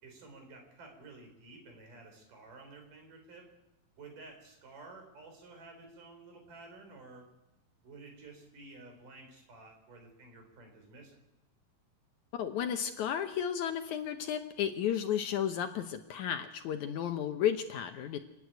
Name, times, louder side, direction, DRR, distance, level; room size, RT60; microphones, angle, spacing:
voice 1, 0.0-3.5 4.0-7.3 7.8-11.2, right 3 dB, 70° right, 3 dB, 5.9 m, -52 dB
voice 2, 12.3-18.2, left 9 dB, 70° left, 7 dB, 2.1 m, -33 dB
28.5 x 9.8 x 9.3 m, 0.92 s
omnidirectional pair, 4.0 m